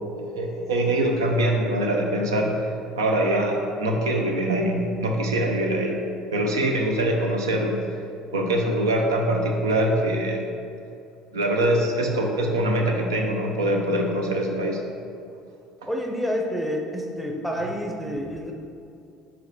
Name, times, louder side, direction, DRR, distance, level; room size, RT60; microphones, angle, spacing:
voice 1, 0.2-2.5 3.0-6.0 6.3-7.8 8.3-10.5 11.3-14.8, right 1 dB, 75° right, 1 dB, 0.7 m, -23 dB
voice 2, 15.9-18.5, equal, 5° right, 0 dB, 0.7 m, -28 dB
4.9 x 3.5 x 5.5 m, 2.6 s
figure-of-eight pair, 60°, 2 cm